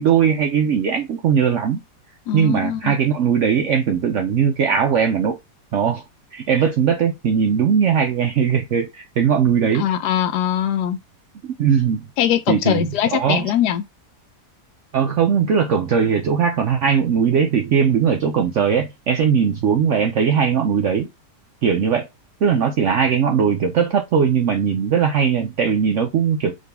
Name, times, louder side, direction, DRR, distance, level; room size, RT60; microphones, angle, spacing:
voice 1, 0.0-1.8 2.3-5.4 5.7-6.0 6.3-9.9 11.4-12.0 12.5-13.4 14.9-21.1 21.6-22.1 22.4-26.6, right 7 dB, 70° right, 0.7 m, -19 dB
voice 2, 2.3-2.9 9.7-11.0 12.2-13.8, left 10 dB, 80° left, 1.2 m, -21 dB
3.9 x 2.7 x 3.3 m
omnidirectional pair, 1.8 m